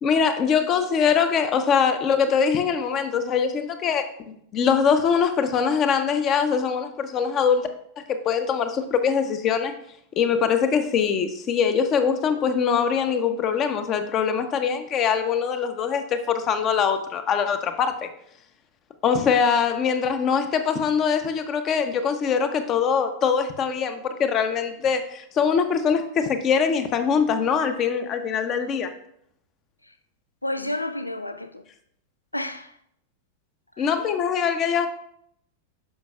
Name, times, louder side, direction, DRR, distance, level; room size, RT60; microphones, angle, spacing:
voice 1, 0.0-7.7 8.0-9.7 10.2-18.1 19.0-28.9 33.8-34.9, left 6 dB, 30° left, 0.8 m, -23 dB
voice 2, 30.4-31.6 32.3-32.8 33.8-33.9, left 1 dB, 85° left, 0.4 m, -31 dB
9.4 x 6.1 x 2.4 m
figure-of-eight pair, 90°, 0 cm